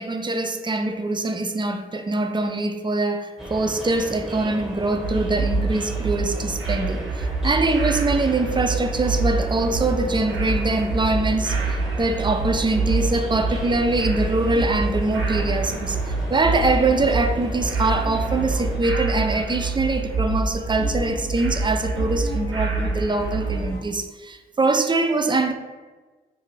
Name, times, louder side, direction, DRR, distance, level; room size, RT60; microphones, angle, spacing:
voice 1, 0.0-25.5, right 2 dB, 20° right, 6 dB, 0.3 m, -23 dB
sound 1, 3.4-18.8, equal, 5° right, 0.9 m, -35 dB
sound 2, 5.0-23.7, right 3 dB, 70° right, 0.6 m, -26 dB
sound 3, 9.5-23.8, left 1 dB, 75° left, 0.7 m, -38 dB
2.5 x 2.4 x 3.1 m, 1.3 s
supercardioid pair, 45°, 21 cm